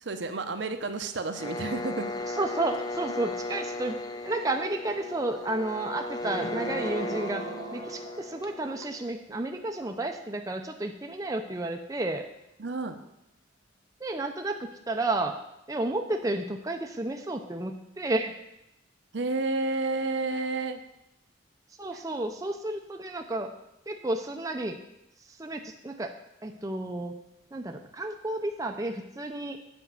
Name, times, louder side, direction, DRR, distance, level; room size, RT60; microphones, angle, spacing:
voice 1, 0.0-2.1 12.6-13.0 19.1-20.8 21.9-22.0, right 3 dB, 65° right, 7 dB, 0.8 m, -31 dB
sound 1, 1.3-9.1, left 2 dB, 20° left, 0.7 m, -36 dB
voice 2, 2.4-12.2 14.0-14.6 14.9-15.4 15.7-18.4 21.8-23.5 23.9-24.8 25.4-26.1 26.4-27.2 27.5-29.6, right 2 dB, 20° right, 4 dB, 0.5 m, -32 dB
sound 2, 6.2-8.9, right 3 dB, 40° right, 1.0 m, -40 dB
8.0 x 5.2 x 7.5 m, 0.86 s
head